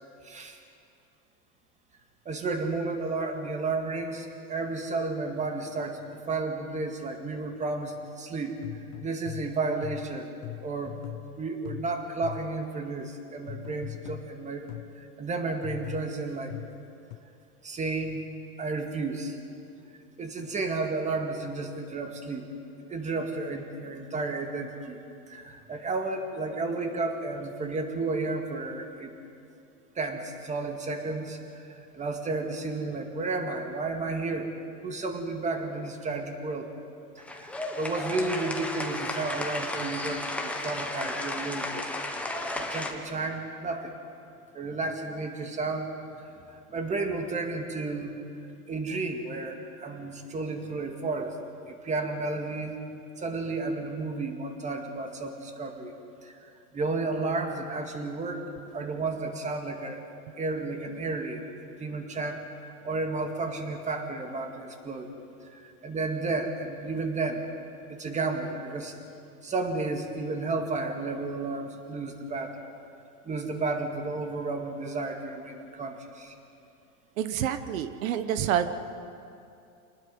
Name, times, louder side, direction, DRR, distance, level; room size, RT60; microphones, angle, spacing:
voice 1, 0.2-0.6 2.3-8.6 9.0-11.0 11.4-14.7 15.0-16.5 17.6-18.3 18.6-19.4 20.2-22.4 22.9-25.0 25.3-29.1 30.0-34.5 34.8-36.7 37.2-37.5 37.8-41.9 42.6-43.9 44.5-45.9 46.2-48.1 48.7-51.4 51.7-52.8 53.2-55.9 56.2-60.0 60.4-62.5 62.8-65.1 65.5-67.4 67.9-68.9 69.4-72.5 73.3-76.3, right 3 dB, 15° right, 4 dB, 1.9 m, -32 dB
sound 1, 8.6-12.7 13.5-15.0 15.6-17.2, left 16 dB, 35° left, 0.7 m, -41 dB
sound 2, 37.2-42.9, left 2 dB, 5° left, 1.3 m, -33 dB
voice 2, 77.2-78.8, right 9 dB, 65° right, 11 dB, 1.2 m, -28 dB
27.5 x 19.5 x 5.4 m, 2.6 s
supercardioid pair, 140°, 44 cm